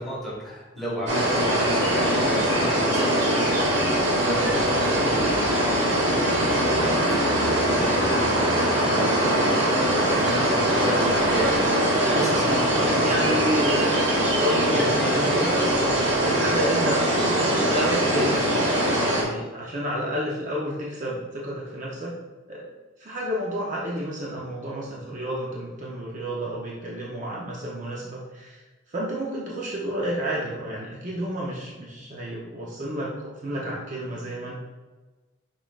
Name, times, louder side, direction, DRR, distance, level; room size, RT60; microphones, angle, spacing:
voice 1, 0.0-3.7 4.2-11.6 12.0-13.4 14.7-15.1 16.4-16.5, equal, ahead, -7 dB, 1.4 m, -33 dB
sound 1, 1.1-19.2, right 1 dB, 60° right, 1.3 m, -22 dB
voice 2, 13.0-14.1 14.4-15.7 16.0-17.1 17.4-18.7 19.0-22.2 22.5-22.6 23.0-34.6, equal, 40° right, -4 dB, 0.7 m, -30 dB
5.4 x 3.8 x 2.3 m, 1.2 s
head